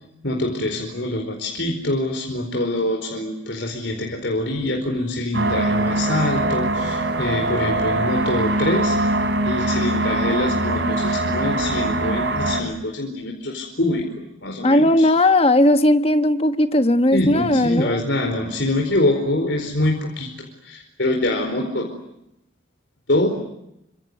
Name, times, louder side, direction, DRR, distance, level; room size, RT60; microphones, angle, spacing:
voice 1, 0.2-9.1 9.4-15.1 17.1-20.3 20.6-21.9 23.1-23.3, left 1 dB, 65° left, 2 dB, 4.6 m, -24 dB
sound 1, 5.3-12.6, right 2 dB, 65° right, 4.4 m, -22 dB
voice 2, 14.6-18.0, left 1 dB, 30° left, 9 dB, 1.4 m, -17 dB
27.5 x 26.0 x 8.0 m, 0.84 s
head